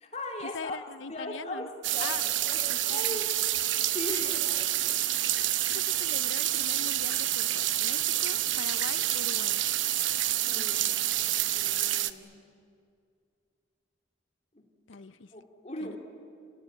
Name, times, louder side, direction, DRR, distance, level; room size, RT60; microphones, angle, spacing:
voice 1, 0.0-0.8 1.1-3.3 3.9-4.6 10.5-10.9 11.5-12.4 14.5-14.7 15.3-16.0, left 1 dB, 35° left, 2 dB, 3.2 m, -39 dB
voice 2, 0.5-1.7 2.0-2.2 2.7-3.2 4.1-4.4 5.7-9.6 14.9-15.3 15.8-16.0, left 5 dB, 85° left, 16 dB, 0.7 m, -42 dB
sound 1, 1.8-12.1, right 13 dB, 80° right, 0.9 m, -28 dB
30.0 x 17.5 x 10.0 m, 2.3 s
head